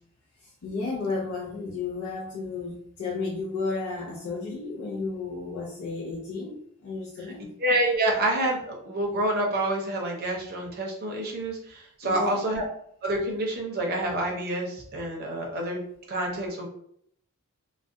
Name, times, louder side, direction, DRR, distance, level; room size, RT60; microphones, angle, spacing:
voice 1, 0.4-7.5 12.0-12.4, left 3 dB, 75° left, -4 dB, 0.5 m, -33 dB
voice 2, 7.6-12.6 13.0-15.8 16.1-16.7, right 1 dB, 45° right, -1 dB, 0.6 m, -27 dB
2.3 x 2.1 x 2.5 m, 0.68 s
head